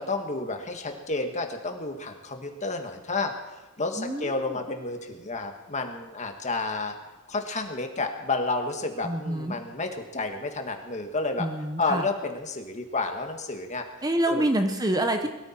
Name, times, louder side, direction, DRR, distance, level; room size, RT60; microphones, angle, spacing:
voice 1, 0.0-3.3 3.8-7.0 7.3-11.5 11.8-13.8 14.3-14.5, left 3 dB, 35° left, 5 dB, 1.7 m, -30 dB
voice 2, 4.0-4.6 9.0-9.6 11.4-12.1 14.0-15.3, right 1 dB, 15° right, 6 dB, 0.9 m, -27 dB
22.0 x 13.5 x 4.5 m, 1.1 s
head